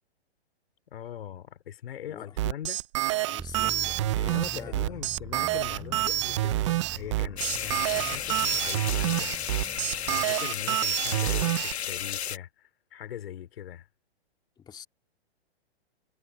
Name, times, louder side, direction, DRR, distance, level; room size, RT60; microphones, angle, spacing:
voice 1, 0.9-2.8 4.3-9.4 10.1-13.9, left 10 dB, 65° left, 3.4 m, -41 dB
voice 2, 2.0-2.4 3.2-5.0 10.2-10.4 14.6-14.9, left 8 dB, 15° left, 2.5 m, -46 dB
sound 1, 2.4-11.7, right 15 dB, 30° right, 0.5 m, -27 dB
sound 2, 3.4-10.2, right 5 dB, 10° right, 5.1 m, -44 dB
sound 3, 7.4-12.4, left 9 dB, 80° left, 1.6 m, -33 dB
hypercardioid pair, 150°, 32 cm